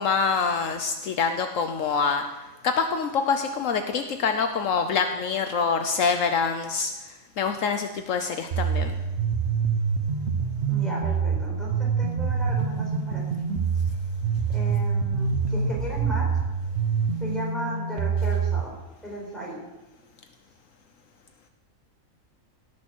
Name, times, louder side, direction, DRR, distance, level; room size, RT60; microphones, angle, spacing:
voice 1, 0.0-2.2 2.6-6.9 7.4-9.0, left 5 dB, 75° left, 7 dB, 1.1 m, -25 dB
sound 1, 8.5-18.6, right 5 dB, 55° right, 1.0 m, -26 dB
voice 2, 10.7-13.2 14.5-16.3 17.2-18.7 19.0-19.6, right 1 dB, ahead, -4 dB, 4.7 m, -35 dB
16.5 x 6.7 x 6.2 m, 1.1 s
omnidirectional pair, 1.4 m